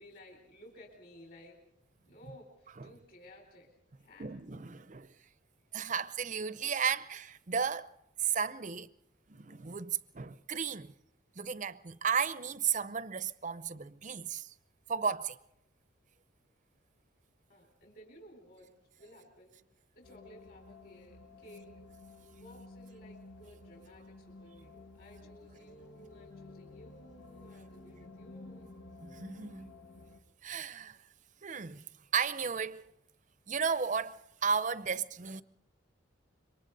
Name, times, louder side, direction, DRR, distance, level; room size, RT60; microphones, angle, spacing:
voice 1, 0.0-1.6 2.1-4.4 17.5-19.5 19.9-21.7 22.3-28.7, equal, 45° left, 4.2 m, -56 dB
voice 2, 4.2-5.1 5.7-7.9 8.2-8.9 9.4-10.9 11.4-14.5 14.9-15.4 29.0-29.7 30.4-31.0 31.4-31.8 32.1-32.9 33.5-35.4, right 6 dB, 40° right, 0.7 m, -34 dB
sound 1, 20.0-30.2, left 2 dB, 80° left, 1.8 m, -53 dB
27.0 x 23.5 x 4.0 m
head